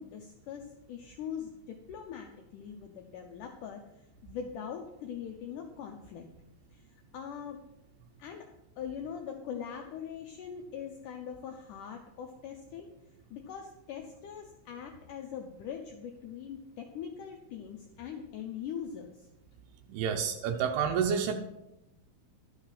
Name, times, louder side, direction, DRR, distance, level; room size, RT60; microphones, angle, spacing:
voice 1, 0.0-3.8 4.2-6.3 6.7-6.8 7.1-7.6 8.2-12.9 13.3-19.3, left 8 dB, 80° left, 4 dB, 1.8 m, -42 dB
voice 2, 19.9-21.3, right 7 dB, 85° right, 4 dB, 2.8 m, -29 dB
12.0 x 6.5 x 5.6 m, 0.90 s
omnidirectional pair, 4.6 m